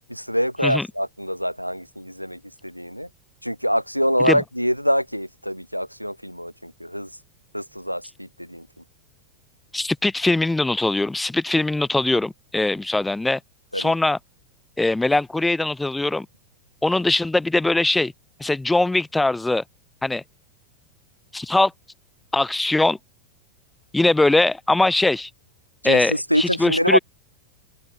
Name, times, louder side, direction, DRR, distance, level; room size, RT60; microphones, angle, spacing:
voice 1, 0.1-3.1 3.4-7.1 7.5-8.7 13.7-13.9 25.8-27.0, equal, 90° right, 4.6 m, -25 dB
voice 2, 9.7-13.4 13.7-14.2 14.8-16.3 16.8-18.1 18.4-19.6 20.0-20.2 21.3-21.7 22.3-23.0 23.9-25.3 25.8-27.0, left 2 dB, 5° left, 7.7 m, -21 dB
open air
figure-of-eight pair, 90°, 0 cm